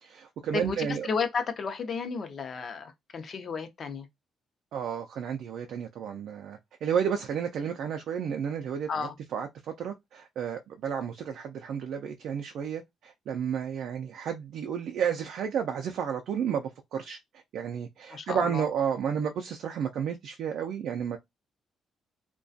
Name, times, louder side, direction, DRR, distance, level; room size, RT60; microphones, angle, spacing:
voice 1, 0.0-1.1 4.7-17.2 17.5-21.2, right 8 dB, 75° right, 0.3 m, -32 dB
voice 2, 0.5-4.1 8.9-9.1 18.1-18.7, left 5 dB, 50° left, 0.6 m, -33 dB
2.3 x 2.2 x 2.5 m
cardioid pair, 90°, 0 cm